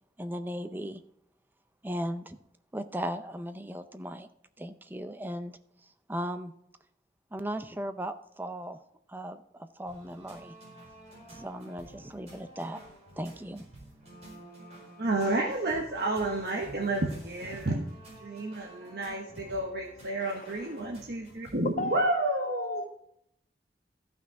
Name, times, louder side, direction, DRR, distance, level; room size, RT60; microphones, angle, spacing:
voice 1, 0.2-1.0 1.8-2.4 2.7-4.3 4.6-5.6 6.1-6.5 7.3-8.8 9.1-10.5 11.3-12.8 13.2-13.6, equal, 10° right, 0.5 m, -37 dB
sound 1, 9.9-21.7, right 1 dB, 40° right, 4.5 m, -50 dB
voice 2, 15.0-17.9 18.2-22.8, right 2 dB, 65° right, 1.1 m, -30 dB
voice 3, 20.2-20.9 21.8-22.9, left 2 dB, 45° left, 0.4 m, -35 dB
13.5 x 5.9 x 4.7 m
head